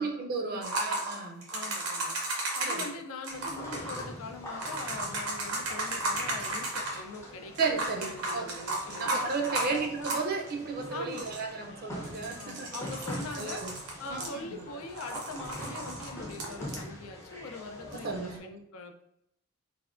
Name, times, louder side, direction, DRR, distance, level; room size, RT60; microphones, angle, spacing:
voice 1, 0.0-1.5 2.7-2.8 7.6-8.7 9.0-12.7 13.4-13.7 14.1-14.6 18.0-18.5, right 4 dB, 45° right, 2 dB, 0.4 m, -34 dB
sound 1, 0.6-2.9 3.2-4.1 4.6-7.0 7.5-10.5 10.8-10.9 11.1-11.5 12.0-14.6 15.0-16.8 17.9-18.0, right 2 dB, 90° right, 0.8 m, -34 dB
voice 2, 1.5-2.1 2.6-9.3 9.7-10.1 10.9-11.2 12.3-13.6 14.0-19.0, left 3 dB, 75° left, 5 dB, 0.4 m, -42 dB
sound 2, 3.3-18.4, equal, 10° left, 0.5 m, -44 dB
3.3 x 2.1 x 2.4 m, 0.75 s
head